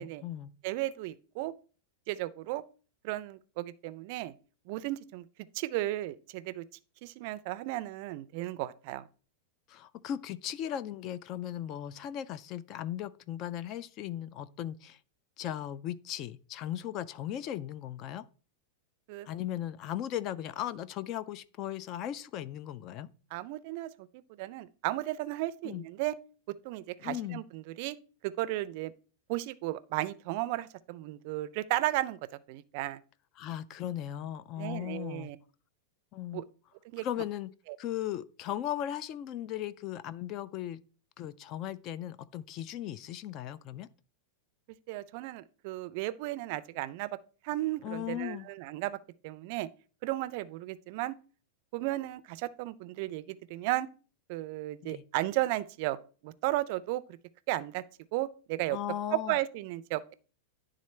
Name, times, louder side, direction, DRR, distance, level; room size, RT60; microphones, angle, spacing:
voice 1, 0.0-0.5 9.7-15.0 15.4-18.3 19.3-23.1 25.6-25.8 27.0-27.4 33.4-35.3 36.1-36.4 37.0-37.5 37.8-40.8 41.2-43.9 47.8-48.5 54.8-55.0 58.7-59.3, left 11 dB, 35° left, 0.3 m, -37 dB
voice 2, 0.6-1.5 2.1-2.6 3.0-4.3 4.7-5.2 5.5-6.6 7.0-9.0 19.1-19.3 23.3-26.1 26.6-28.0 28.2-28.9 29.3-32.2 32.5-33.0 34.6-35.4 36.3-36.4 36.9-37.1 37.7-37.8 44.9-47.1 47.4-49.0 49.2-49.7 50.0-51.1 51.7-53.9 54.3-56.0 56.2-57.0 57.5-57.8 58.1-58.8 59.1-60.1, right 16 dB, 50° right, 0.4 m, -34 dB
10.5 x 3.7 x 3.2 m
supercardioid pair, 150°, 0 cm